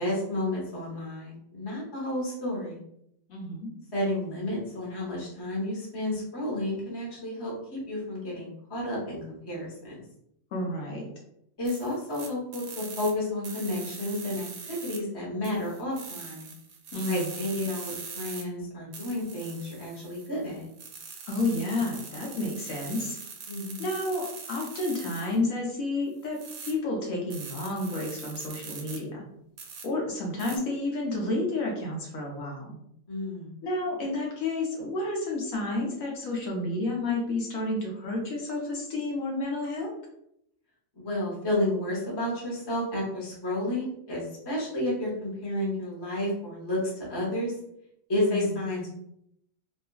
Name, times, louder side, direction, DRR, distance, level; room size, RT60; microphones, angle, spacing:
voice 1, 0.0-2.8 3.9-9.9 11.6-16.5 17.0-20.6 23.5-23.9 33.1-33.5 40.9-47.5 48.1-48.9, left 1 dB, 20° left, -5 dB, 0.7 m, -31 dB
voice 2, 3.3-3.7 10.5-11.0 16.9-17.3 21.3-23.2 23.8-29.3 29.8-32.8 33.6-39.9 48.1-48.6, left 2 dB, 75° left, -1 dB, 1.1 m, -30 dB
sound 1, 11.7-13.1 13.4-15.0 15.4-18.4 18.9-25.4 26.2-26.7 27.3-29.0 29.6-29.8 30.4-30.6, right 5 dB, 85° right, 1.0 m, -42 dB
2.9 x 2.4 x 2.2 m, 0.75 s
omnidirectional pair, 1.5 m